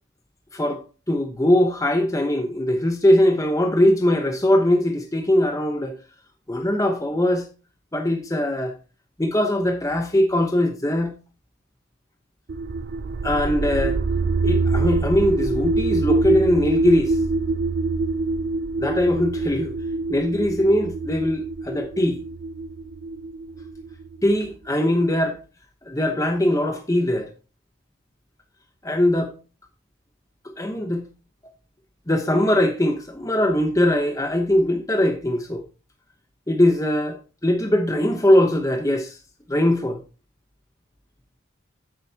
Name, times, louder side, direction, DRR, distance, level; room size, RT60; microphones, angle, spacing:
voice 1, 0.5-5.9 6.5-7.4 7.9-8.7 9.2-11.1 13.2-14.0 14.4-17.2 18.8-19.7 20.1-22.2 24.2-25.4 25.9-27.3 28.8-29.3 30.6-31.0 32.1-35.6 36.5-37.2 37.4-39.2 39.5-40.0, left 1 dB, 15° left, 0.9 m, -21 dB
sound 1, 12.5-24.3, right 3 dB, 45° right, 0.4 m, -25 dB
10.0 x 8.8 x 2.8 m
head